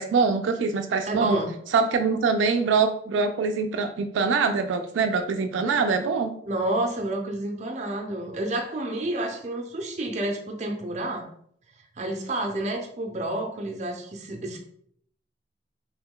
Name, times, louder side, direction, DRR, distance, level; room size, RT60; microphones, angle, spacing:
voice 1, 0.0-1.4 1.7-6.3, right 5 dB, 90° right, 6 dB, 0.3 m, -24 dB
voice 2, 1.1-1.5 6.5-11.3 12.0-14.6, right 1 dB, 40° right, 3 dB, 0.5 m, -29 dB
3.0 x 2.2 x 3.6 m, 0.65 s
head